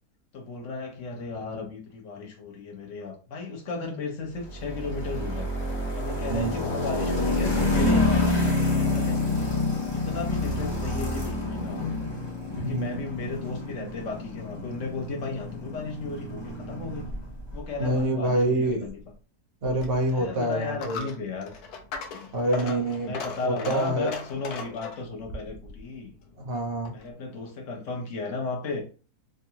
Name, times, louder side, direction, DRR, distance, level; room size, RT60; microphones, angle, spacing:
voice 1, 0.3-5.5 6.0-9.5 9.9-11.9 12.6-17.1 17.5-19.0 20.1-21.5 22.5-26.1 26.9-28.8, left 4 dB, 55° left, 1 dB, 1.1 m, -35 dB
sound 1, 4.5-17.6, left 2 dB, 25° left, 0.7 m, -28 dB
voice 2, 12.6-13.1 17.8-18.9 19.6-21.1 22.3-23.2 23.4-24.1 26.4-26.9, right 1 dB, 45° right, 2 dB, 0.9 m, -26 dB
Coin (dropping), 19.8-27.1, left 4 dB, 80° left, 1.1 m, -39 dB
3.5 x 2.2 x 2.8 m, 0.36 s
omnidirectional pair, 1.7 m